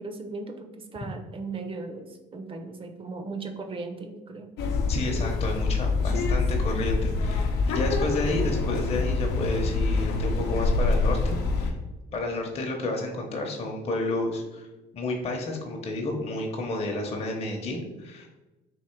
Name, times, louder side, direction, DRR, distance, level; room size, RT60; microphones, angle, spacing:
voice 1, 0.0-4.5 6.0-6.3, right 3 dB, 30° right, 5 dB, 0.6 m, -37 dB
sound 1, 4.6-11.7, left 3 dB, 90° left, 0.7 m, -25 dB
voice 2, 4.9-11.8 12.1-14.7 14.9-18.3, left 2 dB, 35° left, 1 dB, 0.7 m, -31 dB
3.6 x 2.9 x 4.4 m, 1.1 s
cardioid pair, 110°, 17 cm